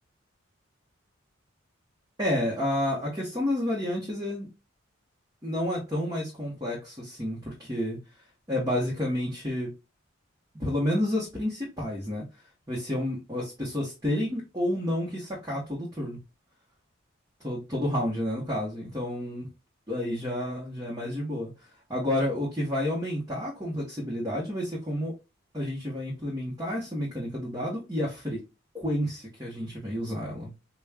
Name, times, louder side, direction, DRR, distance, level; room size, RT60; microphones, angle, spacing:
voice 1, 2.2-4.5 5.4-8.0 8.5-9.7 10.6-12.2 12.7-16.2 17.4-19.5 19.9-21.5 21.9-25.1 25.5-28.4 28.7-30.5, left 1 dB, 20° right, 1.2 m, -30 dB
5.0 x 2.4 x 2.3 m
head